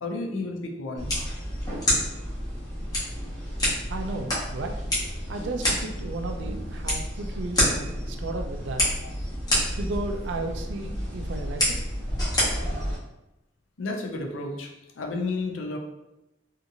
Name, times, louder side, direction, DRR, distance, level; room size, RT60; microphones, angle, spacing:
voice 1, 0.0-1.1 13.8-15.8, left 3 dB, 85° left, 1 dB, 0.5 m, -32 dB
sound 1, 1.0-13.0, equal, 20° left, 0.9 m, -28 dB
voice 2, 3.9-4.8 5.3-8.8 9.7-11.8, right 2 dB, 65° right, 5 dB, 0.4 m, -34 dB
2.8 x 2.5 x 2.6 m, 0.95 s
head